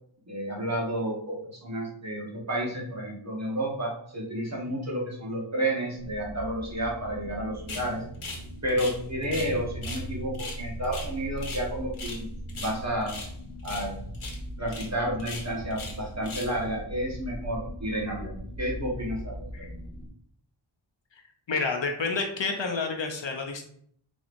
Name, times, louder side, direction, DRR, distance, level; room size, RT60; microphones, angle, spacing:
voice 1, 0.3-8.0 8.6-12.3 12.5-13.2 13.6-13.9 14.6-19.7, right 1 dB, 35° right, -3 dB, 1.3 m, -31 dB
sound 1, 6.0-20.1, equal, 20° left, 1.3 m, -39 dB
sound 2, 7.7-7.9 8.2-8.4 8.7-9.5 9.8-10.0 10.3-11.7 11.9-12.2 12.5-13.3 13.6-13.9 14.1-14.4 14.7-14.9 15.2-16.0 16.2-16.6, left 3 dB, 80° left, 1.0 m, -39 dB
voice 2, 21.5-23.7, left 4 dB, 65° left, 3 dB, 0.7 m, -29 dB
4.0 x 3.3 x 2.5 m, 0.64 s
wide cardioid pair, 55°, 49 cm